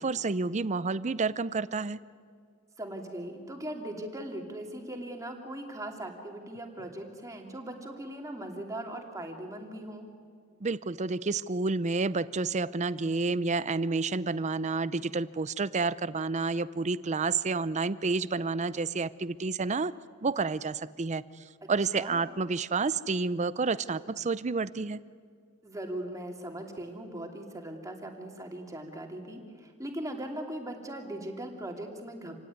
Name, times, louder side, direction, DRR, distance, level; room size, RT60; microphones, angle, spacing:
voice 1, 0.0-2.0 10.6-19.9 20.2-21.2 21.7-25.0, right 4 dB, 35° right, 17 dB, 0.6 m, -29 dB
voice 2, 2.8-10.1 21.9-22.2 25.6-32.3, right 1 dB, 15° right, 2 dB, 2.8 m, -39 dB
27.0 x 17.5 x 9.6 m, 2.1 s
head